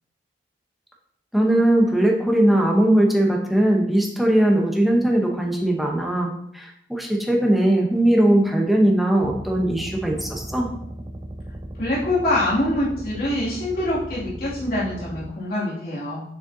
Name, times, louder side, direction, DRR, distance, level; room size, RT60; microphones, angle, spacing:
voice 1, 1.3-10.7, right 1 dB, ahead, -1 dB, 0.9 m, -19 dB
sound 1, 9.2-15.3, right 1 dB, 25° right, 0.5 m, -36 dB
voice 2, 11.7-16.2, left 1 dB, 60° left, -8 dB, 2.6 m, -24 dB
6.5 x 6.3 x 2.8 m, 0.72 s
head